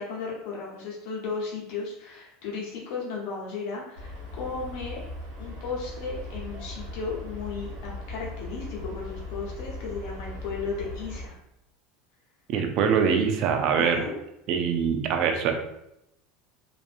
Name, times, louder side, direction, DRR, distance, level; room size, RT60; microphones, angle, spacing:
voice 1, 0.0-5.0 5.4-11.3 13.8-14.2, left 4 dB, 70° left, -4 dB, 0.8 m, -35 dB
sound 1, 4.0-11.3, left 2 dB, 75° right, 0.8 m, -38 dB
voice 2, 12.5-14.0 14.5-15.5, right 7 dB, 55° right, 5 dB, 0.4 m, -23 dB
2.6 x 2.5 x 2.4 m, 0.82 s
supercardioid pair, 105°, 0 cm